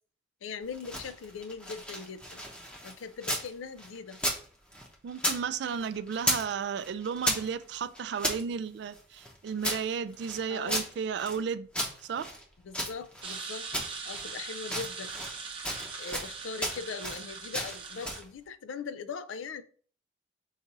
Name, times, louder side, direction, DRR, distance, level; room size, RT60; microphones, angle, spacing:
voice 1, 0.4-2.4 2.8-4.2 10.5-10.9 12.6-13.7 14.0-15.1 16.0-19.6, left 5 dB, 85° left, 0.4 m, -40 dB
sound 1, 0.6-3.5 3.8-5.4 5.7-6.5 6.8-8.4 8.9-11.4 11.7-13.4 13.7-14.3 14.6-15.4 15.6-16.3 16.6-17.2 17.5-18.3, equal, 5° left, 0.7 m, -34 dB
voice 2, 5.0-11.7 12.0-12.3, right 6 dB, 60° right, 0.3 m, -33 dB
sound 2, 13.2-18.2, right 5 dB, 25° right, 0.7 m, -41 dB
4.1 x 2.6 x 4.6 m
head